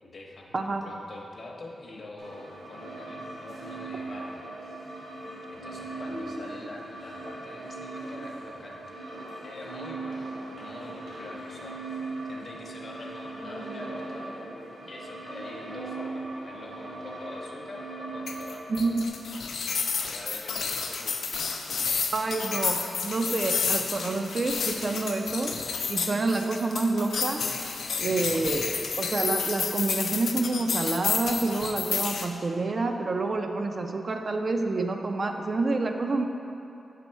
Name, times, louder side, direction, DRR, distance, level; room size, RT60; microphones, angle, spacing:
voice 1, 0.0-4.4 5.5-9.0 9.4-14.4 14.8-18.6 20.0-21.9 27.9-28.4 28.7-28.8, left 2 dB, 45° left, -1 dB, 0.7 m, -45 dB
sound 1, 2.2-19.1, right 2 dB, 65° right, 1.5 m, -39 dB
sound 2, 18.3-32.3, left 5 dB, 85° left, 0.4 m, -30 dB
voice 2, 18.7-19.1 22.1-25.6 25.9-27.4 28.0-28.7 29.0-36.2, right 3 dB, 40° right, 4 dB, 0.3 m, -28 dB
5.9 x 4.2 x 4.5 m, 2.8 s
wide cardioid pair, 130°, 0 cm